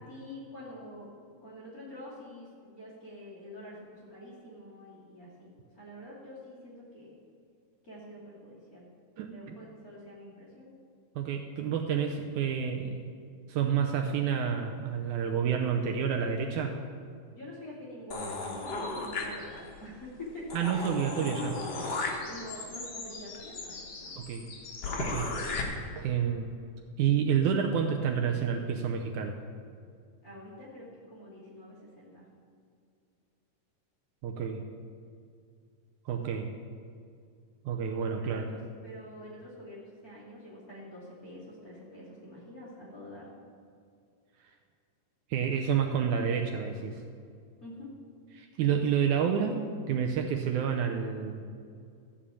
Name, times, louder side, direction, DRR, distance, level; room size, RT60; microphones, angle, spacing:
voice 1, 0.1-1.1 1.4-7.1 7.8-8.9 9.3-10.7 17.3-21.5 22.2-24.1 30.2-32.3 36.1-36.3 38.2-43.3 47.6-47.9, left 1 dB, 25° left, -7 dB, 2.6 m, -46 dB
voice 2, 9.2-9.6 11.2-13.1 13.5-16.8 20.5-21.5 24.2-24.5 25.0-25.3 26.0-26.5 27.0-29.4 34.2-34.6 36.1-36.5 37.7-38.5 45.3-47.0 48.3-51.5, right 7 dB, 75° right, 4 dB, 1.9 m, -29 dB
sound 1, 18.1-19.8 20.2-20.3 20.5-25.6, left 3 dB, 55° left, 1.2 m, -36 dB
14.0 x 5.1 x 8.4 m, 2.4 s
omnidirectional pair, 4.0 m